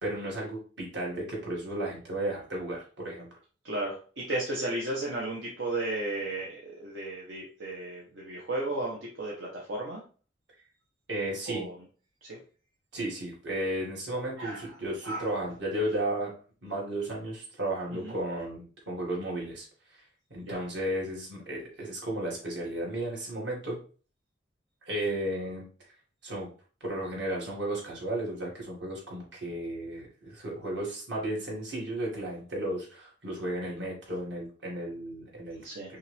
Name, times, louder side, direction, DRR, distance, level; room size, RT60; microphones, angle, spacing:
voice 1, 0.0-3.3 11.1-11.7 12.9-16.3 16.6-19.7 20.3-23.8 24.9-25.6 26.2-26.5 26.8-35.6 35.9-36.0, right 1 dB, 70° right, -4 dB, 2.2 m, -34 dB
voice 2, 3.6-10.0 11.5-11.8 12.2-12.4 14.4-14.7 15.0-15.3 17.9-18.2 20.4-20.6 35.6-35.9, right 2 dB, 90° right, -3 dB, 1.0 m, -34 dB
5.5 x 2.5 x 3.4 m, 0.39 s
head